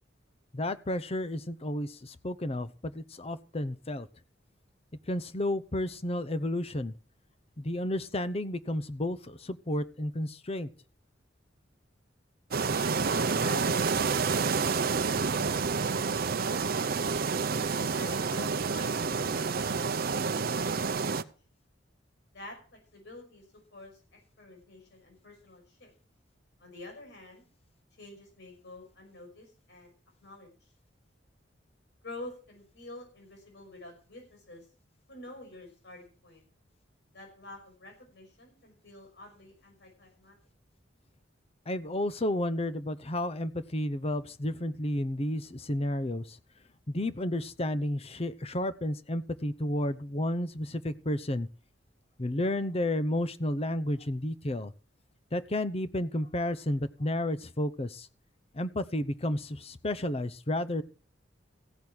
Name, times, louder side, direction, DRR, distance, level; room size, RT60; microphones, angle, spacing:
voice 1, 0.5-4.1 5.1-6.9 7.6-10.7 41.7-46.4 46.9-51.5 52.2-54.7 55.3-58.1 58.5-60.8, left 1 dB, 35° left, 14 dB, 0.8 m, -32 dB
sound 1, 12.5-21.2, right 5 dB, 55° right, 0.7 m, -29 dB
voice 2, 12.7-17.2 18.0-20.2 20.5-21.3 22.3-23.4 23.7-24.0 24.4-25.9 26.6-27.4 28.0-29.9 30.2-30.7 32.0-34.7 35.1-36.4 37.1-40.4, left 2 dB, 65° left, 2 dB, 5.9 m, -48 dB
15.5 x 6.2 x 8.7 m, 0.39 s
head